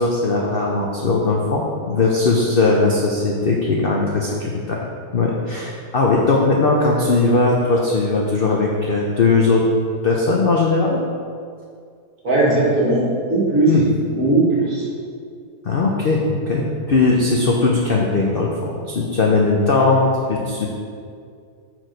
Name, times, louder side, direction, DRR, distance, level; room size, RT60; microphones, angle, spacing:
voice 1, 0.0-4.8 5.1-9.6 10.0-11.0 13.7-13.8 15.6-20.7, left 3 dB, 60° left, -2 dB, 0.6 m, -19 dB
voice 2, 12.2-13.7 14.1-14.9, right 2 dB, 55° right, -5 dB, 1.9 m, -18 dB
6.1 x 4.6 x 5.1 m, 2.2 s
omnidirectional pair, 1.8 m